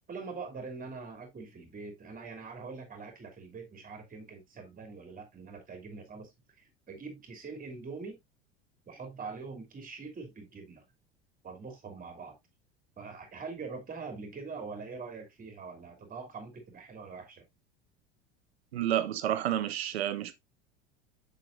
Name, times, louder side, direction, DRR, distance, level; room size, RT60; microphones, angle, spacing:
voice 1, 0.1-6.3 6.6-8.2 8.9-10.8 11.4-12.4 13.0-17.4, right 4 dB, 25° right, 3.0 m, -43 dB
voice 2, 18.7-20.3, right 11 dB, 70° right, 1.0 m, -30 dB
7.6 x 6.8 x 2.6 m
figure-of-eight pair, 75°, 32 cm